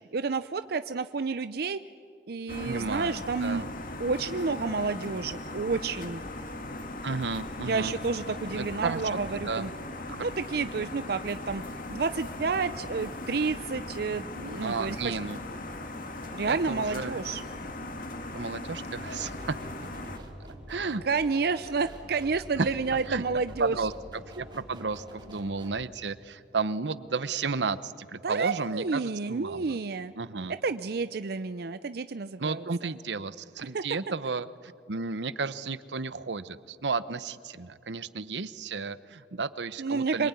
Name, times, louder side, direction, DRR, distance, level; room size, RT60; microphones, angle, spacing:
voice 1, 0.1-1.8 2.3-3.7 4.0-6.2 7.7-9.7 10.2-11.6 11.9-15.2 16.3-17.4 21.0-23.8 28.2-30.1 30.6-32.9 33.7-33.8 39.8-40.3, right 4 dB, 60° right, 12 dB, 0.6 m, -30 dB
sound 1, 2.5-20.2, left 2 dB, 50° left, 2.0 m, -39 dB
voice 2, 2.6-3.6 7.0-7.9 8.5-9.7 10.1-10.2 14.6-15.4 16.5-17.2 18.3-19.6 20.7-21.0 22.6-22.7 23.1-23.2 23.6-23.9 24.3-29.7 30.2-30.5 32.4-40.3, right 4 dB, 85° right, 15 dB, 0.9 m, -33 dB
sound 2, 19.0-25.8, equal, 25° right, 3.3 m, -46 dB
26.0 x 22.5 x 9.6 m, 2.3 s
head